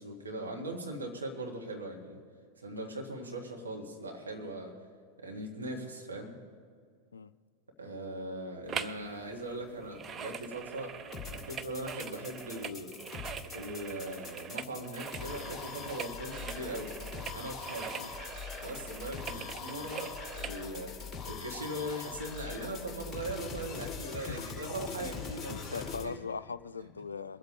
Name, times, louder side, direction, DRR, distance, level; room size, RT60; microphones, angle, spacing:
voice 1, 0.0-2.2 2.6-4.7 5.2-6.3 7.8-10.9 11.3-12.9 13.5-16.9 17.3-17.9 18.6-26.1 26.8-26.9, right 1 dB, 75° right, 1 dB, 2.0 m, -40 dB
sound 1, 8.7-9.0 9.3-20.6 21.1-21.2, right 7 dB, 25° right, 0.6 m, -43 dB
sound 2, 11.1-26.0, left 5 dB, 15° left, 2.4 m, -42 dB
voice 2, 25.5-27.4, left 5 dB, 75° left, 14 dB, 0.3 m, -40 dB
22.0 x 8.1 x 5.0 m, 2.1 s
figure-of-eight pair, 90°, 0 cm